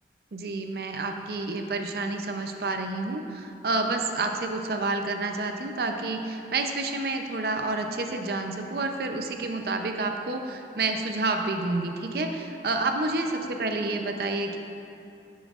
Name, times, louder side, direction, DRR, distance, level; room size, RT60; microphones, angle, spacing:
voice 1, 0.3-14.6, right 3 dB, 60° right, 4 dB, 0.5 m, -29 dB
11.0 x 7.1 x 2.4 m, 2.7 s
head